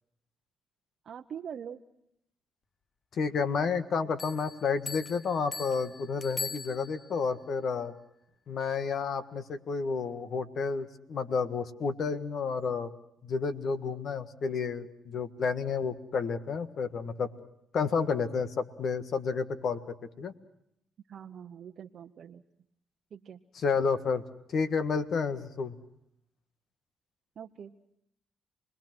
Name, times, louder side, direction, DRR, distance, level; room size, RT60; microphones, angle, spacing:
voice 1, 1.0-1.8 21.1-22.4 23.1-23.4 27.4-27.7, right 8 dB, 60° right, 4 dB, 0.9 m, -43 dB
voice 2, 3.1-7.9 8.5-12.9 13.2-17.3 17.7-19.8 20.2-20.3 23.5-24.2 24.5-25.8, left 5 dB, 60° left, 10 dB, 1.6 m, -30 dB
sound 1, 4.2-7.2, left 4 dB, 35° left, 1.2 m, -41 dB
28.5 x 20.5 x 6.1 m, 0.75 s
cardioid pair, 90°, 0 cm